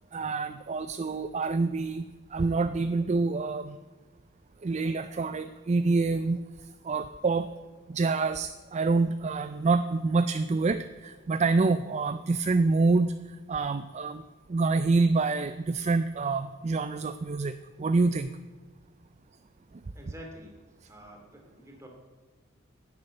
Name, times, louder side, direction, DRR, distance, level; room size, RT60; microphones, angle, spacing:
voice 1, 0.1-2.0 2.3-3.8 4.6-7.5 7.9-14.2 14.5-18.3 19.7-19.8, right 3 dB, 35° right, 12 dB, 0.4 m, -27 dB
voice 2, 19.9-20.6 20.9-21.9, equal, 15° right, 1 dB, 2.6 m, -47 dB
10.5 x 7.9 x 8.8 m, 1.4 s
head